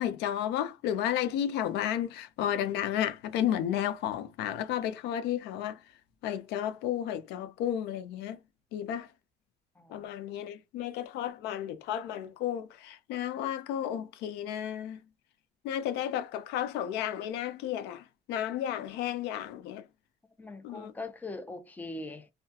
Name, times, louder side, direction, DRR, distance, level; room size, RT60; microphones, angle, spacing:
voice 1, 0.0-5.8 6.2-8.4 8.7-9.1 9.9-15.0 15.6-19.8 20.6-20.9, left 10 dB, 90° left, 0.5 m, -32 dB
voice 2, 9.8-10.1 20.4-22.3, left 2 dB, 10° left, 0.5 m, -41 dB
2.2 x 2.2 x 2.7 m
cardioid pair, 110°, 17 cm